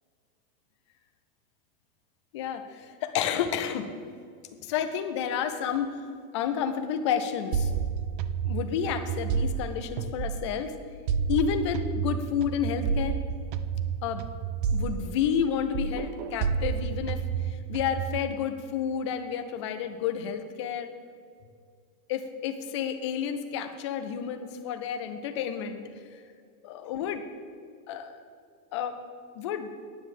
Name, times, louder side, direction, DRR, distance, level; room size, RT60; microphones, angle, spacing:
voice 1, 2.3-3.9 4.6-6.0 6.3-7.8 8.4-10.7 11.3-13.2 14.0-14.2 14.7-20.9 22.1-25.8 26.1-26.2 26.6-27.2 27.9-28.2 28.7-29.0 29.3-29.7, left 8 dB, 25° left, 8 dB, 0.3 m, -30 dB
sound 1, 7.5-10.6 11.1-15.5 15.7-18.2, right 7 dB, 40° right, 0.4 m, -30 dB
9.8 x 6.9 x 7.7 m, 2.2 s
supercardioid pair, 155°, 44 cm